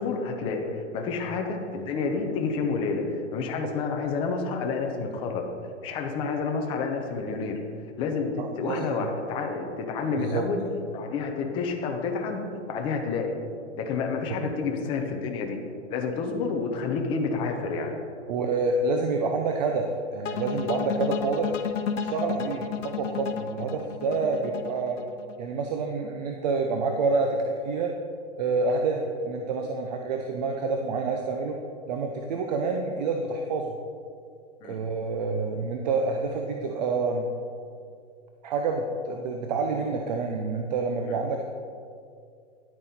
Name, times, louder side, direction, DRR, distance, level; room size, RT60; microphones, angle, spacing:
voice 1, 0.0-5.4 5.8-7.6 8.0-10.6 10.9-12.4 12.7-13.3 13.8-15.6 15.9-18.0 34.6-34.8 41.0-41.2, left 4 dB, 15° left, 3 dB, 0.6 m, -29 dB
voice 2, 8.4-9.1 10.1-10.5 18.3-21.5 22.0-25.0 25.4-27.9 28.4-31.6 31.9-33.7 34.6-37.3 38.4-41.4, right 3 dB, 35° right, 3 dB, 0.6 m, -28 dB
sound 1, 20.2-25.3, left 6 dB, 80° left, 0.9 m, -32 dB
11.0 x 8.9 x 4.3 m, 2.3 s
hypercardioid pair, 160°, 37 cm